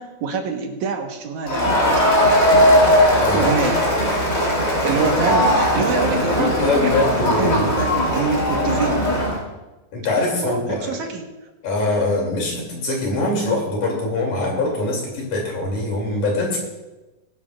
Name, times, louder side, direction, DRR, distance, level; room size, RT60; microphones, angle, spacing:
voice 1, 0.0-1.8 3.3-3.8 4.8-7.0 7.3-9.0 10.4-11.3, right 5 dB, 80° right, 2 dB, 2.8 m, -25 dB
Crowd, 1.5-9.4, equal, 25° left, 3.5 m, -18 dB
voice 2, 6.3-7.7 9.9-11.0 11.6-16.6, left 2 dB, 85° left, -1 dB, 4.5 m, -23 dB
21.5 x 11.0 x 2.6 m, 1.1 s
omnidirectional pair, 3.4 m